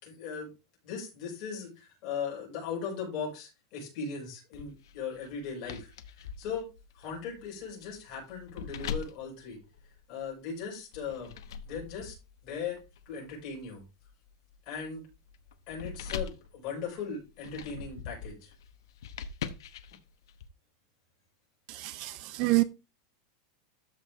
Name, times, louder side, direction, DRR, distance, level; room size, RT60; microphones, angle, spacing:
voice 1, 0.0-0.5 0.8-5.9 6.2-6.7 6.9-9.6 10.1-11.3 11.6-12.1 12.4-12.8 13.1-13.8 14.7-15.0 15.7-18.5, left 6 dB, 35° left, 5.9 m, -38 dB
sound 1, 4.5-10.3 10.9-20.5, left 7 dB, 80° left, 1.0 m, -43 dB
voice 2, 21.7-22.6, right 22 dB, 35° right, 0.4 m, -27 dB
13.5 x 4.5 x 3.5 m
supercardioid pair, 175°, 2 cm